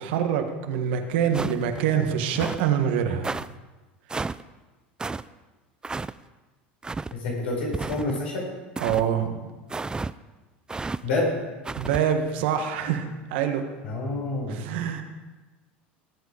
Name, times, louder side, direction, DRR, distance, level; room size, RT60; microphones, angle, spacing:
voice 1, 0.0-3.3 8.8-9.5 11.8-13.7 14.5-15.0, right 8 dB, 70° right, 6 dB, 1.5 m, -25 dB
sound 1, 1.3-1.8 2.3-2.7 3.2-3.5 4.1-4.4 5.0-5.2 5.8-6.1 6.8-7.1 7.7-8.2 8.8-9.1 9.7-10.1 10.7-11.0 11.7-12.0, right 3 dB, 15° right, 0.4 m, -31 dB
voice 2, 7.1-8.5 11.0-11.3 13.8-14.6, left 2 dB, 80° left, -3 dB, 5.6 m, -28 dB
19.0 x 8.2 x 5.0 m, 1.2 s
hypercardioid pair, 85°, 6 cm